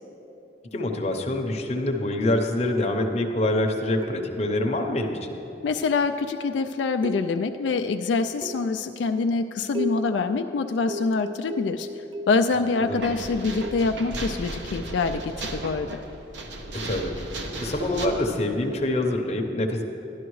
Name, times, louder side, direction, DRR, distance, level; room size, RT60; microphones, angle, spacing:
voice 1, 0.7-5.2 12.7-13.1 16.8-17.2 17.6-19.8, left 1 dB, 35° left, 3 dB, 0.7 m, -25 dB
sound 1, 4.0-4.6 5.8-6.2 7.0-7.6 8.4-8.9 9.7-10.2 10.9-12.5 13.6-14.0 15.5-15.7, right 1 dB, 30° right, 0.3 m, -36 dB
voice 2, 5.6-11.9 12.3-16.0, left 4 dB, 85° left, 7 dB, 0.3 m, -25 dB
sound 2, 12.9-18.1, right 2 dB, 85° right, 0.9 m, -35 dB
12.0 x 11.0 x 3.1 m, 3.0 s
head